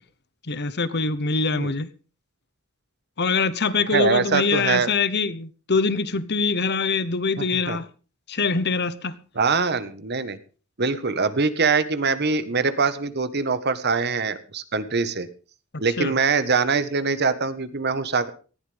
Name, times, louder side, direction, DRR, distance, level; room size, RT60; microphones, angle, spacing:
voice 1, 0.5-1.9 3.2-7.9 8.3-9.1 16.0-16.1, left 4 dB, 55° left, 1.1 m, -24 dB
voice 2, 3.9-4.9 7.4-7.8 9.3-10.4 10.8-15.3 15.8-18.3, right 4 dB, 50° right, 1.5 m, -23 dB
19.0 x 15.0 x 3.6 m
head